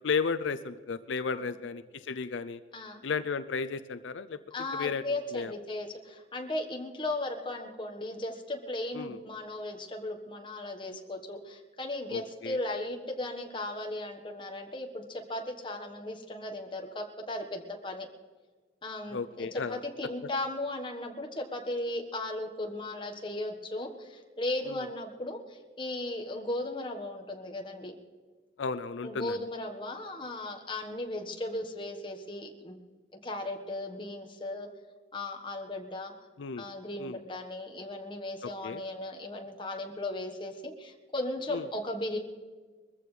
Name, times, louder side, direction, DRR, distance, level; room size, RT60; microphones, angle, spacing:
voice 1, 0.0-2.6 3.0-4.4 4.7-5.0 5.3-5.5 8.9-9.2 12.1-12.6 19.1-19.8 24.7-24.8 28.6-29.4 36.4-36.6 37.0-37.2 38.4-38.8 41.5-41.7, left 5 dB, 85° left, 12 dB, 0.5 m, -33 dB
voice 2, 2.7-3.0 4.5-18.1 18.8-27.9 29.0-32.8 33.2-34.7 35.1-36.1 36.6-42.2, left 1 dB, 25° left, 3 dB, 1.3 m, -36 dB
22.0 x 14.5 x 3.3 m, 1.4 s
head